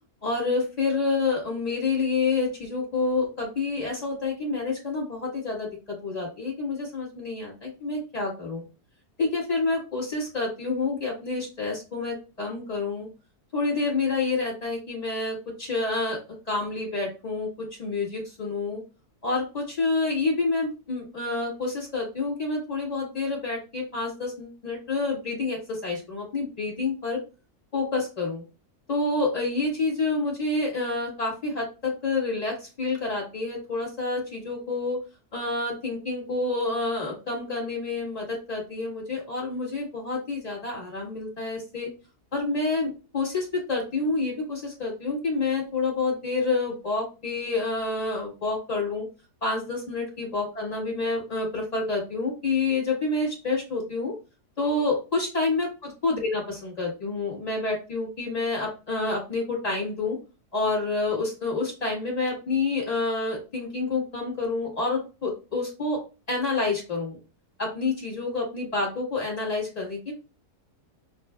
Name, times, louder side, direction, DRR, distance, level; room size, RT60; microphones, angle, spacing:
voice 1, 0.2-5.7 6.0-8.6 9.2-13.1 13.5-16.2 16.4-17.5 17.8-18.8 19.2-27.2 27.7-28.4 28.9-35.0 35.3-41.9 42.3-49.0 49.4-54.1 54.6-55.7 56.0-60.2 60.5-66.0 66.3-67.2 67.6-70.1, left 3 dB, 25° left, -3 dB, 1.6 m, -28 dB
6.1 x 2.5 x 2.3 m, 0.32 s
omnidirectional pair, 1.7 m